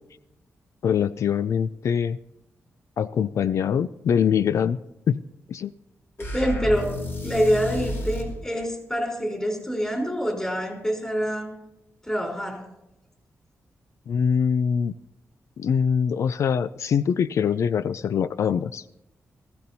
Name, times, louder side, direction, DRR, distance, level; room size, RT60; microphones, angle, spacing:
voice 1, 0.8-2.2 3.0-4.8 5.1-5.2 5.5-5.7 14.1-14.9 15.6-18.8, left 7 dB, 70° left, 15 dB, 0.4 m, -23 dB
sound 1, 6.2-8.4, left 1 dB, 50° left, 3.0 m, -30 dB
voice 2, 6.3-6.9 7.2-11.5 12.0-12.6, equal, 15° left, 1 dB, 3.8 m, -26 dB
19.5 x 15.0 x 2.8 m, 0.88 s
wide cardioid pair, 120°, 5 cm